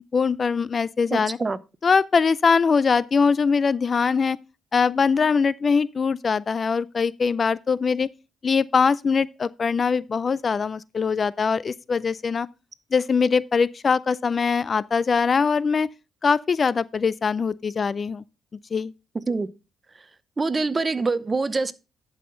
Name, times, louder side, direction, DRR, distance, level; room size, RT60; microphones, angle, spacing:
voice 1, 0.1-1.4 1.8-4.4 4.7-8.1 8.4-12.5 12.9-15.9 16.2-18.2 18.7-18.9, left 5 dB, 40° left, 0.4 m, -22 dB
voice 2, 1.1-1.6 19.3-19.5 20.4-21.7, right 3 dB, 25° right, 0.7 m, -25 dB
11.0 x 5.7 x 3.8 m
cardioid pair, 90°, 0 cm